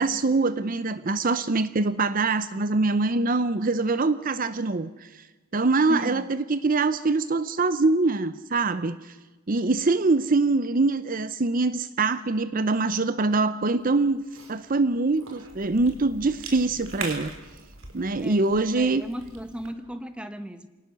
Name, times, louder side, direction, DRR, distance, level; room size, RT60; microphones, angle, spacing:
voice 1, 0.0-5.3 5.5-9.1 9.5-14.2 14.5-17.3 17.9-19.0, right 3 dB, 40° right, 14 dB, 0.7 m, -24 dB
voice 2, 5.9-6.3 18.2-20.7, equal, 5° right, 10 dB, 1.3 m, -36 dB
Cough / Chewing mastication, 13.8-19.7, right 4 dB, 85° right, 4.4 m, -42 dB
27.5 x 18.5 x 7.0 m, 1.2 s
head